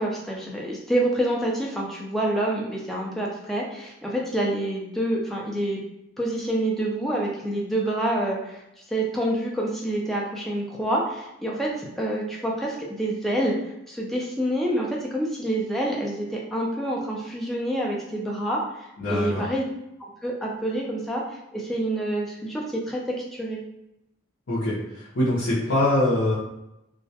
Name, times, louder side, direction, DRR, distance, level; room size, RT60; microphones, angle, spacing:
voice 1, 0.0-5.8 6.2-8.6 8.9-13.5 13.9-19.6 20.0-21.2 21.5-23.0 23.3-23.6, right 1 dB, ahead, -3 dB, 0.4 m, -27 dB
voice 2, 19.0-19.4 24.5-26.4, left 1 dB, 65° left, -10 dB, 0.6 m, -23 dB
2.2 x 2.0 x 2.7 m, 0.87 s
head